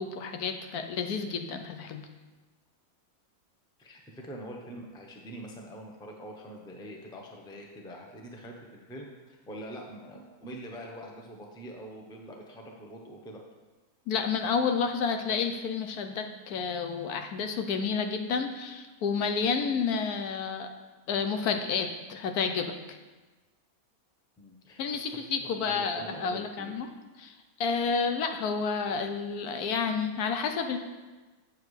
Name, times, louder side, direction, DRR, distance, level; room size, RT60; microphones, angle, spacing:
voice 1, 0.0-2.1 14.1-20.7 21.1-22.7 24.8-26.9 27.2-30.8, left 5 dB, 75° left, 6 dB, 1.2 m, -30 dB
voice 2, 3.8-13.4 24.4-25.2 25.6-26.7, right 1 dB, 5° left, 1 dB, 0.5 m, -44 dB
8.2 x 7.3 x 3.2 m, 1.2 s
omnidirectional pair, 1.6 m